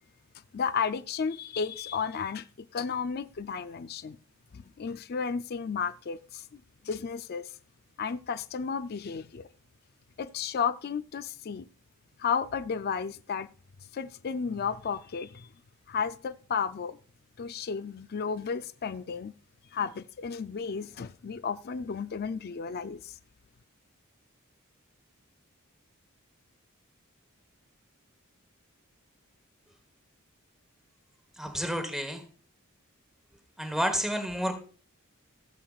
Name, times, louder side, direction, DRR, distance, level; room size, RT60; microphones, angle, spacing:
voice 1, 0.5-4.2 4.5-7.5 8.0-9.4 10.2-11.7 12.2-13.5 13.9-15.5 15.9-17.0 17.4-19.3 19.7-23.2, left 6 dB, 45° left, 0.4 m, -33 dB
voice 2, 31.3-32.2 33.6-34.6, equal, ahead, 1.1 m, -30 dB
16.5 x 7.6 x 2.3 m
head